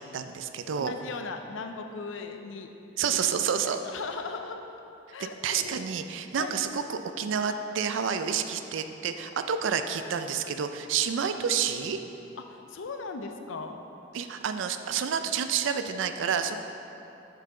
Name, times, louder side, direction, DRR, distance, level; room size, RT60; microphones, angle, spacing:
voice 1, 0.1-0.9 3.0-3.8 5.4-12.0 14.1-16.6, right 7 dB, 70° right, 8 dB, 0.4 m, -29 dB
voice 2, 0.7-2.7 3.0-3.3 3.6-4.6 5.1-5.8 6.4-6.6 8.2-8.4 12.4-13.8, left 4 dB, 75° left, 6 dB, 0.5 m, -38 dB
6.7 x 5.7 x 3.7 m, 2.9 s
head